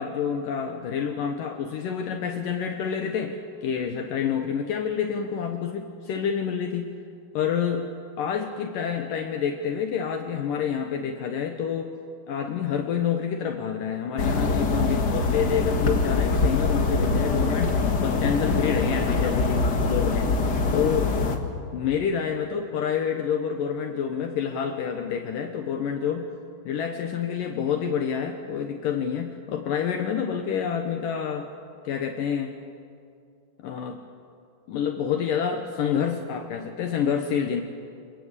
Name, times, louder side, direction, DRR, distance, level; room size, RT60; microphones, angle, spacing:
voice 1, 0.0-6.9 7.3-7.9 8.2-12.0 12.3-20.3 20.7-21.2 21.7-26.3 26.7-31.5 31.8-32.6 33.6-34.0 34.7-37.6, left 7 dB, 70° left, 5 dB, 2.6 m, -28 dB
sound 1, 14.2-21.4, left 3 dB, 55° left, 1.1 m, -24 dB
25.5 x 22.5 x 8.3 m, 2.3 s
omnidirectional pair, 4.5 m